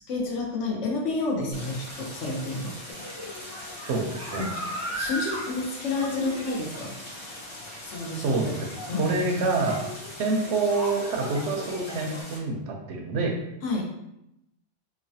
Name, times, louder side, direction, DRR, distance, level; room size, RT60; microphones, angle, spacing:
voice 1, 0.1-3.4 4.3-4.5 4.9-7.0 7.8-8.6 8.9-9.3 13.6-13.8, left 2 dB, 80° left, -1 dB, 1.0 m, -30 dB
Stream, 1.5-12.4, left 1 dB, 40° left, 0.4 m, -41 dB
sound 1, 2.9-12.2, equal, 25° right, 0.4 m, -38 dB
voice 2, 3.9-4.5 8.2-8.5 9.0-9.8 10.2-13.3, right 3 dB, 80° right, 2 dB, 0.9 m, -27 dB
3.1 x 2.1 x 2.6 m, 0.83 s
omnidirectional pair, 1.2 m